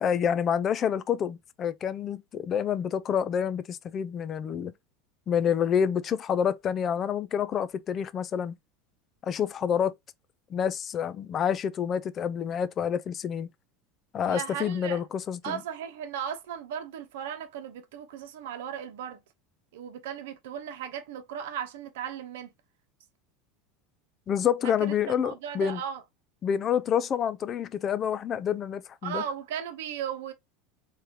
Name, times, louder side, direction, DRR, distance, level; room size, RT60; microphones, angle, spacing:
voice 1, 0.0-4.7 5.3-8.5 9.2-9.9 10.5-13.5 14.1-15.6 24.3-25.8 26.4-29.2, left 8 dB, 35° left, 0.4 m, -28 dB
voice 2, 14.2-15.0 15.4-19.2 19.7-22.5 24.6-26.0 29.0-30.3, right 8 dB, 80° right, 0.8 m, -36 dB
3.6 x 3.1 x 2.9 m
hypercardioid pair, 100°, 0 cm